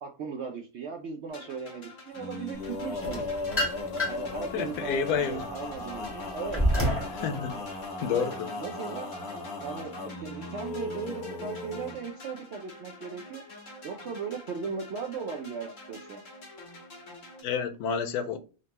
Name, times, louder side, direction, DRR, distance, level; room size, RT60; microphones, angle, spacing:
voice 1, 0.0-3.3 4.1-6.6 7.3-7.6 8.6-9.1 9.6-13.4 13.8-16.2, right 5 dB, 70° right, 0.6 m, -38 dB
sound 1, 1.3-17.4, left 2 dB, 55° left, 1.7 m, -47 dB
Male singing, 2.1-11.9, left 2 dB, 70° left, 1.5 m, -37 dB
sound 2, 3.0-4.4 4.9-7.2, equal, 15° left, 0.6 m, -28 dB
voice 2, 4.5-5.5 7.1-8.5 17.4-18.4, left 6 dB, 85° left, 1.1 m, -30 dB
3.9 x 2.2 x 2.8 m
omnidirectional pair, 1.6 m